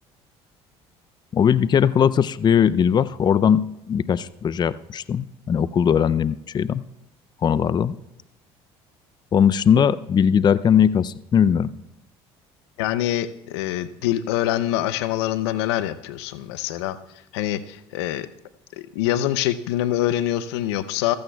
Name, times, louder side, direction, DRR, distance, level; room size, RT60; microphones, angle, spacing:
voice 1, 1.3-6.8 7.4-8.0 9.3-11.7, left 8 dB, 35° left, 18 dB, 0.4 m, -19 dB
voice 2, 12.8-17.0 17.3-18.3 18.8-21.2, left 13 dB, 90° left, 15 dB, 0.5 m, -25 dB
15.0 x 14.5 x 2.3 m, 0.87 s
supercardioid pair, 80°, 13 cm